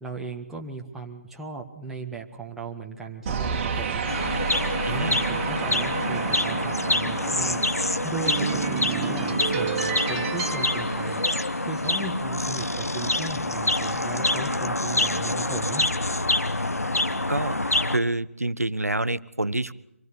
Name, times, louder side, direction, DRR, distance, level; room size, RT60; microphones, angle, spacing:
voice 1, 0.0-4.0 4.7-7.6 8.0-11.2 11.6-15.8, right 4 dB, 5° right, 1 dB, 1.6 m, -37 dB
sound 1, 3.3-11.8, right 6 dB, 20° right, 3.2 m, -30 dB
sound 2, 4.1-18.0, left 2 dB, 80° left, 1.4 m, -26 dB
voice 2, 4.8-5.2 17.3-17.5 17.9-19.7, right 2 dB, 85° right, 17 dB, 1.0 m, -27 dB
25.5 x 17.5 x 8.6 m, 0.80 s
figure-of-eight pair, 150°, 8 cm